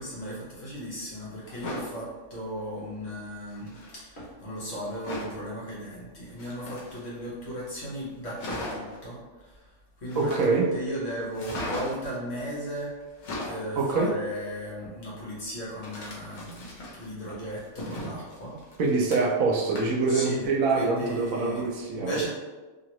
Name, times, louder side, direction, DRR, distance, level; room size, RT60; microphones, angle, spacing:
voice 1, 0.0-9.7 10.0-12.9 13.4-18.6 20.1-20.5 20.7-21.6 21.9-22.3, equal, 55° left, -7 dB, 1.2 m, -36 dB
sound 1, 1.4-1.9 3.5-3.9 5.0-5.4 6.3-7.3 7.7-7.8 8.0-8.1 8.4-9.0 10.1-10.7 11.3-12.1 13.0-13.7 15.8-17.1 17.5-19.4 19.7-20.1 20.4-20.5, left 1 dB, 80° left, 1.2 m, -37 dB
voice 2, 10.2-10.6 13.8-14.1 18.8-22.3, right 4 dB, 75° right, -1 dB, 1.0 m, -25 dB
2.8 x 2.8 x 2.9 m, 1.3 s
omnidirectional pair, 1.5 m